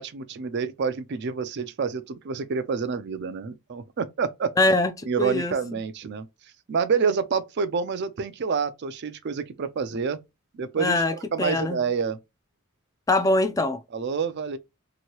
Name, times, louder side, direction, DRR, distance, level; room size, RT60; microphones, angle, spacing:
voice 1, 0.0-4.5 5.1-6.3 6.7-10.2 10.5-12.2 13.9-14.6, right 5 dB, 50° right, 0.4 m, -28 dB
voice 2, 4.6-4.9 5.2-5.6 10.8-11.8 13.1-13.8, left 2 dB, 15° left, 0.3 m, -22 dB
2.9 x 2.7 x 2.9 m
head